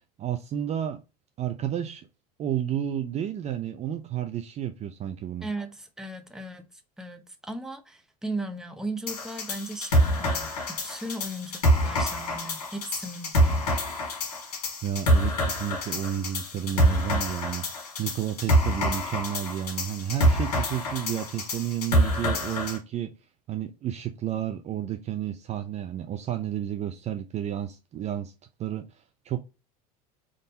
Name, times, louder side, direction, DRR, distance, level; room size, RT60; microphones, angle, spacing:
voice 1, 0.2-1.0 1.4-2.1 2.4-5.5 14.8-17.7 18.0-23.1 23.5-28.3 28.6-28.8 29.3-29.4, right 10 dB, 35° right, 0.5 m, -31 dB
voice 2, 5.4-6.7 7.0-13.8, right 1 dB, 5° right, 0.7 m, -37 dB
sound 1, 9.1-22.8, equal, 80° left, 1.5 m, -26 dB
3.7 x 2.6 x 3.9 m
hypercardioid pair, 85°, 20 cm